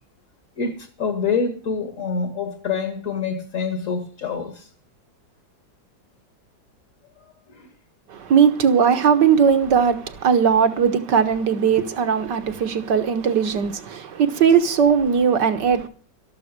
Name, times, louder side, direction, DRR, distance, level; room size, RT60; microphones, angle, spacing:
voice 1, 0.6-4.7 7.5-7.7, left 5 dB, 45° left, 1.9 m, -26 dB
voice 2, 8.1-15.9, right 7 dB, 65° right, 1.9 m, -18 dB
13.0 x 12.0 x 6.7 m
omnidirectional pair, 2.1 m